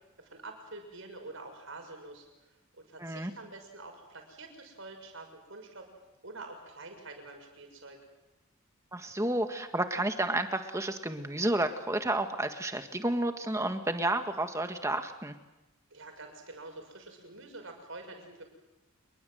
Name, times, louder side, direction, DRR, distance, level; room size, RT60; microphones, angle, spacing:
voice 1, 0.2-2.2 2.8-5.9 6.2-8.0 15.9-18.4, right 2 dB, 70° right, 4 dB, 6.4 m, -47 dB
voice 2, 3.0-3.3 8.9-15.3, right 1 dB, 15° right, 7 dB, 1.7 m, -31 dB
27.5 x 22.0 x 7.9 m, 1.0 s
head